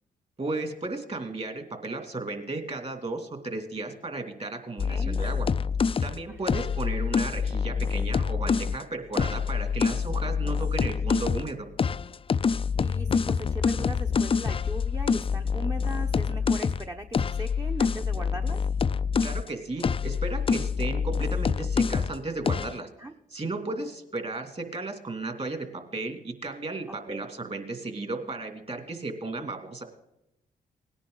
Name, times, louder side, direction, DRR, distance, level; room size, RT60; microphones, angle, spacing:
voice 1, 0.4-5.5 6.0-11.7 19.2-22.9 23.3-29.8, right 2 dB, 40° right, 5 dB, 2.7 m, -34 dB
sound 1, 4.8-8.8 9.1-11.5 11.8-19.5 19.8-22.2 22.5-22.8, left 6 dB, 35° left, 0.4 m, -26 dB
voice 2, 4.9-5.2 6.3-6.5 9.1-9.2 12.8-18.6 23.0-23.1 26.9-27.2, right 1 dB, 20° right, 4 dB, 0.9 m, -39 dB
18.0 x 10.0 x 3.9 m, 0.84 s
supercardioid pair, 55°, 17 cm